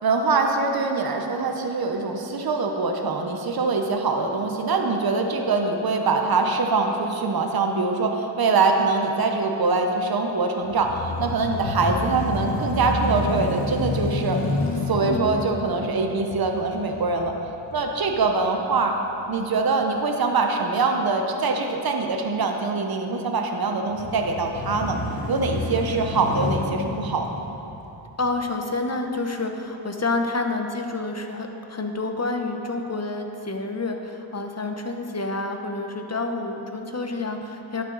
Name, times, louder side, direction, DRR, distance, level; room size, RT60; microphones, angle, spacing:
voice 1, 0.0-14.4 14.9-17.3 17.7-19.0 19.3-25.0 25.3-27.6, right 3 dB, 50° right, 3 dB, 0.9 m, -23 dB
sound 1, 10.6-18.8 19.3-19.4 23.9-28.4, left 2 dB, 50° left, 1.3 m, -30 dB
voice 2, 15.0-15.4 28.2-37.8, left 3 dB, 35° left, 4 dB, 1.0 m, -28 dB
11.5 x 8.4 x 4.0 m, 3.0 s
cardioid pair, 60°, 46 cm